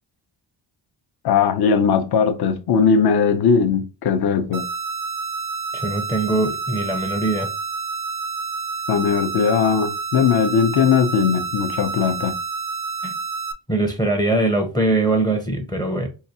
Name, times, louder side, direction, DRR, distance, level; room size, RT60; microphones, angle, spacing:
voice 1, 1.2-4.6 8.9-12.4, left 6 dB, 55° left, 0.6 m, -19 dB
sound 1, 4.5-13.5, right 4 dB, 45° right, 0.5 m, -29 dB
voice 2, 5.7-7.5 13.0-13.1 13.7-16.1, right 2 dB, 10° left, 0.5 m, -22 dB
4.7 x 2.3 x 2.7 m
wide cardioid pair, 155°, 48 cm